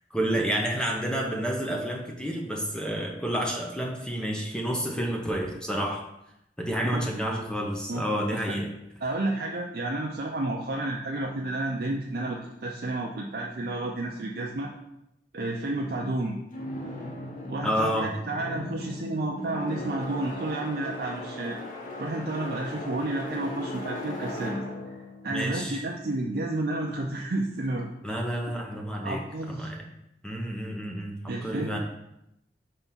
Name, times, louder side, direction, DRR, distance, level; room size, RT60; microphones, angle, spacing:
voice 1, 0.1-6.0 6.6-8.7 17.6-18.1 25.3-25.8 28.0-29.2 29.5-29.8 30.2-31.8, equal, 5° left, 0 dB, 0.7 m, -29 dB
voice 2, 9.0-14.7 15.3-16.4 17.5-21.6 22.0-24.6 25.2-27.9 29.0-29.7 31.3-31.8, right 2 dB, 55° right, -1 dB, 0.6 m, -31 dB
sound 1, 16.5-26.5, left 1 dB, 45° left, 1.3 m, -38 dB
5.6 x 3.5 x 5.6 m, 0.84 s
head